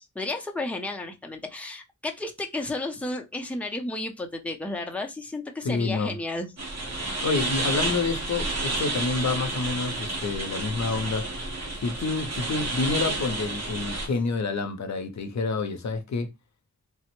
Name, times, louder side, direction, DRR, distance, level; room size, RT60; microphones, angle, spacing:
voice 1, 0.2-6.5, left 2 dB, 5° left, 0.5 m, -32 dB
voice 2, 5.6-6.2 7.2-11.3 11.8-16.3, left 4 dB, 65° left, 0.5 m, -28 dB
sound 1, 6.6-14.1, right 2 dB, 60° right, 1.3 m, -30 dB
3.3 x 2.0 x 3.0 m
wide cardioid pair, 75°, 30 cm